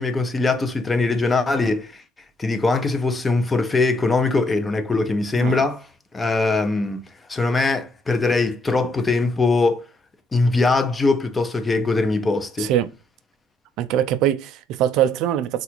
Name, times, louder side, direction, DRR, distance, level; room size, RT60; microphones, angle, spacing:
voice 1, 0.0-2.0 2.4-5.9 6.1-7.0 7.3-9.8 10.3-12.7, left 3 dB, 15° left, 0.4 m, -21 dB
voice 2, 12.6-12.9 13.8-15.6, right 11 dB, 55° right, 0.3 m, -22 dB
3.3 x 2.4 x 2.9 m
supercardioid pair, 110°, 0 cm